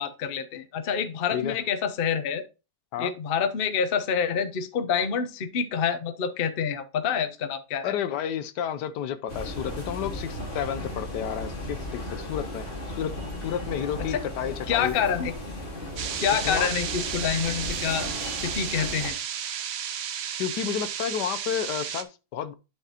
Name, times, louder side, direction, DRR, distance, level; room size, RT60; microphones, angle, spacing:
voice 1, 0.0-2.4 3.0-7.9 14.1-14.2 14.7-15.3 16.2-18.1 18.4-19.2, left 7 dB, 50° left, 0.7 m, -27 dB
voice 2, 7.8-13.1 13.4-14.9 16.3-16.7 20.4-22.5, left 9 dB, 75° left, 1.2 m, -31 dB
sound 1, 9.3-19.1, left 1 dB, 30° left, 1.9 m, -36 dB
sound 2, 16.0-22.0, right 8 dB, 60° right, 0.8 m, -33 dB
11.5 x 4.9 x 2.8 m
omnidirectional pair, 1.9 m